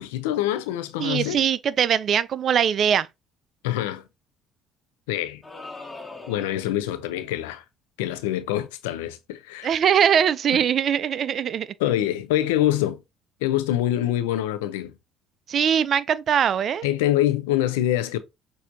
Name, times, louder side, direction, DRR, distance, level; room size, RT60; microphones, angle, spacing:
voice 1, 0.0-1.4 3.6-4.0 5.1-5.4 6.3-7.6 8.0-9.7 10.5-10.6 11.8-13.0 13.4-14.9 16.8-18.2, left 13 dB, 80° left, 0.5 m, -25 dB
voice 2, 1.0-3.1 9.6-11.7 15.5-16.9, right 8 dB, 50° right, 0.4 m, -21 dB
sound 1, 5.4-6.8, left 3 dB, 15° left, 1.7 m, -40 dB
6.2 x 2.7 x 2.6 m
hypercardioid pair, 60°, 0 cm